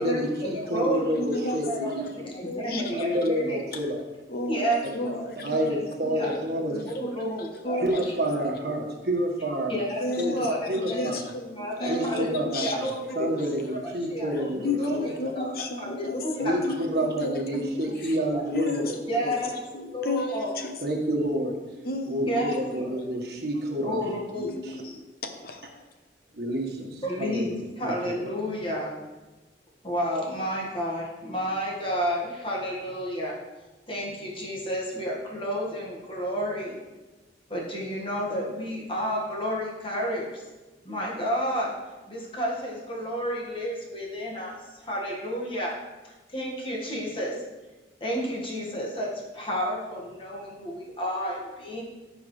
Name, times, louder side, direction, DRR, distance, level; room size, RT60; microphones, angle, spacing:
voice 1, 0.0-2.1 2.9-4.0 5.4-6.9 7.8-9.8 10.2-10.3 10.7-11.2 11.8-12.9 13.1-15.1 16.4-19.3 20.8-21.6 22.1-24.0 24.6-24.8 26.3-27.5 27.8-28.3, right 1 dB, 55° right, -1 dB, 1.6 m, -29 dB
voice 2, 0.6-3.6 4.5-5.2 5.7-6.3 6.8-8.0 9.7-11.1 11.6-13.4 13.8-15.4 15.8-16.5 17.5-18.4 19.1-20.5 22.2-23.0 23.8-24.5 27.0-28.9 29.8-33.4 33.9-36.7 37.5-40.4 40.8-41.8 42.1-45.7 46.0-47.3 48.0-51.8, equal, 30° left, -3 dB, 1.8 m, -31 dB
voice 3, 1.2-3.0 4.3-5.7 6.0-8.4 10.0-13.5 14.6-17.4 18.0-18.1 18.5-18.9 19.2-19.4 19.7-20.7 21.8-22.3 24.4-25.6, left 2 dB, 55° left, 5 dB, 1.0 m, -33 dB
14.5 x 5.2 x 3.3 m, 1.2 s
head